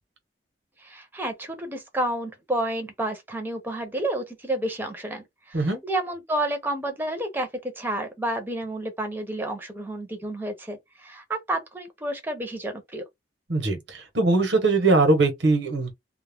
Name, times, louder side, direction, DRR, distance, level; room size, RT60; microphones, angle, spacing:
voice 1, 0.8-13.0, right 1 dB, 10° right, 0.6 m, -30 dB
voice 2, 13.5-15.9, right 3 dB, 90° right, 0.9 m, -21 dB
2.3 x 2.1 x 3.4 m
head